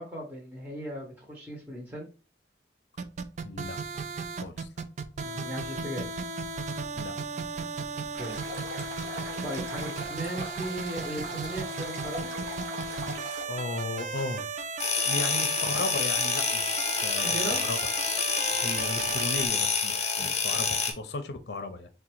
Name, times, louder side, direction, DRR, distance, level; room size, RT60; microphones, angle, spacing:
voice 1, 0.0-2.1 5.2-6.1 8.1-8.4 9.4-12.3 15.1-15.3 17.2-17.6 20.2-20.3, right 1 dB, 10° right, 0.8 m, -37 dB
sound 1, 3.0-19.5, right 4 dB, 40° right, 0.3 m, -35 dB
voice 2, 3.4-4.0 4.4-4.7 7.0-7.1 13.5-14.5 15.0-17.8 18.5-21.9, left 2 dB, 65° left, 0.5 m, -36 dB
Stream, 8.2-13.4, right 1 dB, 80° right, 1.0 m, -41 dB
sound 2, 14.8-20.9, left 6 dB, 35° left, 0.8 m, -28 dB
3.7 x 2.2 x 4.3 m
head